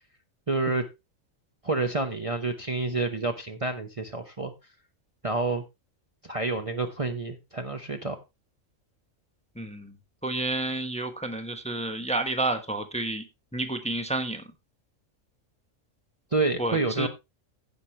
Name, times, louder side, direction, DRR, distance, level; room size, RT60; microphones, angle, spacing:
voice 1, 0.5-0.9 1.6-4.5 5.2-5.6 6.2-8.2 16.3-17.1, right 3 dB, 30° right, 0.9 m, -28 dB
voice 2, 9.6-9.9 10.2-13.2 13.5-14.4 16.6-17.1, right 2 dB, 5° left, 1.1 m, -30 dB
16.5 x 5.9 x 3.2 m
omnidirectional pair, 1.3 m